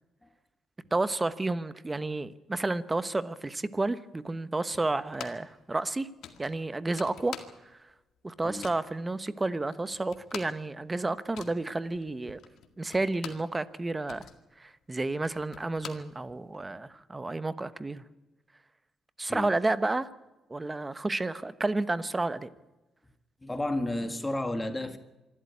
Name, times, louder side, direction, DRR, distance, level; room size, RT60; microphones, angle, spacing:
voice 1, 0.9-6.1 6.4-7.4 8.2-12.4 12.8-14.2 14.6-18.0 19.2-20.1 20.5-22.5, right 2 dB, 20° right, 1.1 m, -31 dB
sound 1, 4.7-5.6 5.8-5.9 6.2-7.9 8.2-8.9 9.4-9.5 9.7-13.6 13.9-16.6, left 9 dB, 75° left, 2.0 m, -46 dB
voice 2, 23.4-25.0, left 1 dB, 15° left, 1.8 m, -32 dB
26.0 x 12.5 x 9.7 m
cardioid pair, 90°, 0 cm